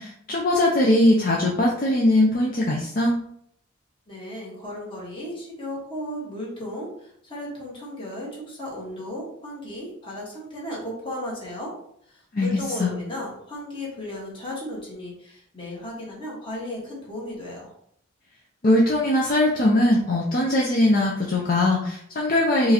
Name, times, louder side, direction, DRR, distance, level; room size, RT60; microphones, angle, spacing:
voice 1, 0.0-3.2 12.3-12.9 18.6-22.7, left 1 dB, 45° left, -2 dB, 0.5 m, -20 dB
voice 2, 4.1-11.7 12.1-17.7, left 1 dB, 25° left, -5 dB, 1.5 m, -35 dB
4.6 x 3.2 x 2.9 m, 0.70 s
head